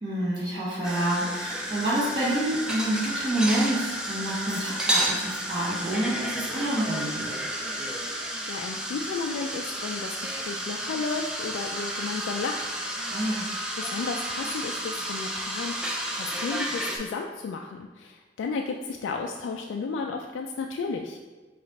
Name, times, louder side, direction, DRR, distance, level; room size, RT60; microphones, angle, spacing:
voice 1, 0.0-7.4 13.1-13.4, right 1 dB, 25° right, -10 dB, 1.2 m, -28 dB
sound 1, 0.8-17.0, right 1 dB, 5° right, 0.4 m, -31 dB
voice 2, 8.2-13.1 13.8-21.2, left 4 dB, 90° left, 2 dB, 0.3 m, -33 dB
5.0 x 2.4 x 4.1 m, 1.3 s
head